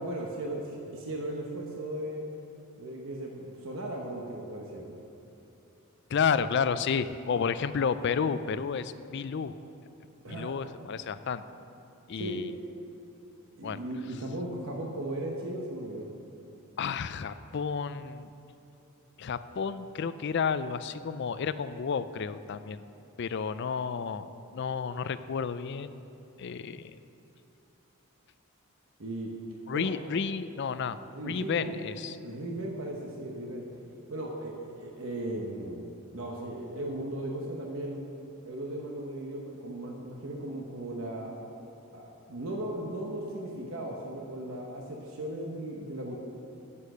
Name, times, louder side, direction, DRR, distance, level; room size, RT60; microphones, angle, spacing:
voice 1, 0.0-2.3 2.8-4.9 10.2-10.7 12.1-12.4 13.6-16.1 29.0-29.3 29.7-29.9 31.1-31.8 32.2-33.7 34.1-38.0 38.4-41.4 41.9-46.1, right 1 dB, 60° right, 0 dB, 1.0 m, -37 dB
voice 2, 6.1-9.5 10.3-11.4 12.1-12.5 13.6-13.8 16.8-18.3 19.2-22.8 23.2-24.3 24.5-26.0 26.4-26.9 29.7-32.1, left 6 dB, 50° left, 13 dB, 0.4 m, -31 dB
9.7 x 8.5 x 6.5 m, 2.8 s
head